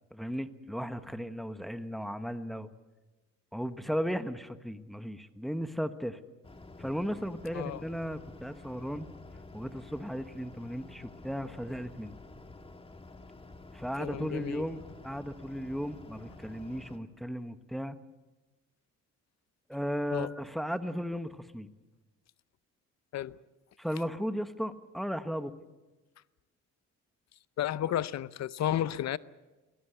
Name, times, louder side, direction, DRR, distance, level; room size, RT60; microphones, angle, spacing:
voice 1, 0.1-2.7 3.5-6.2 6.8-9.1 9.5-12.1 13.7-18.0 19.7-21.7 23.8-25.5 27.8-27.9, equal, ahead, 1.2 m, -36 dB
sound 1, 6.4-17.0, left 2 dB, 20° left, 1.8 m, -50 dB
voice 2, 14.0-14.6 20.1-20.3 23.1-23.4 27.6-29.2, left 11 dB, 60° left, 0.7 m, -32 dB
24.0 x 17.5 x 8.0 m
cardioid pair, 90°, 30 cm